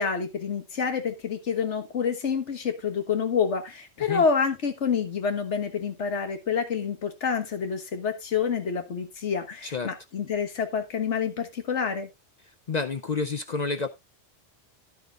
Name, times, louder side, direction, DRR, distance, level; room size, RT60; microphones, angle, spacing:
voice 1, 0.0-12.1, left 6 dB, 85° left, 1.6 m, -28 dB
voice 2, 9.6-9.9 12.7-13.9, left 4 dB, 45° left, 0.6 m, -29 dB
10.5 x 10.5 x 2.4 m
omnidirectional pair, 1.2 m